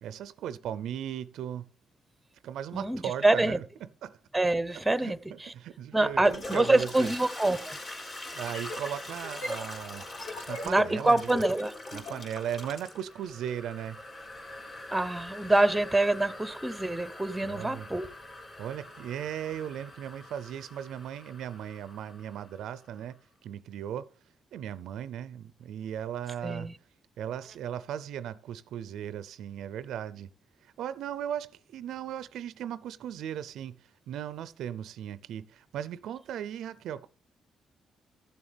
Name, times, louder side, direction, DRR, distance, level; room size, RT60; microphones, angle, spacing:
voice 1, 0.0-1.7 2.4-3.6 4.0-4.2 5.0-7.1 8.3-10.0 10.5-11.4 11.9-14.0 17.4-17.9 18.6-24.1 24.5-26.7 27.2-30.3 30.6-37.1, right 10 dB, 80° right, 0.4 m, -37 dB
voice 2, 2.7-3.6 4.3-5.5 5.9-7.8 10.6-11.7 14.9-18.1 26.4-26.7, right 2 dB, 10° right, 0.8 m, -26 dB
Toilet flush, 6.1-22.8, left 1 dB, 45° left, 4.0 m, -44 dB
sound 1, 8.3-12.2, left 2 dB, 60° left, 2.9 m, -39 dB
14.5 x 7.2 x 3.3 m
cardioid pair, 90°, 0 cm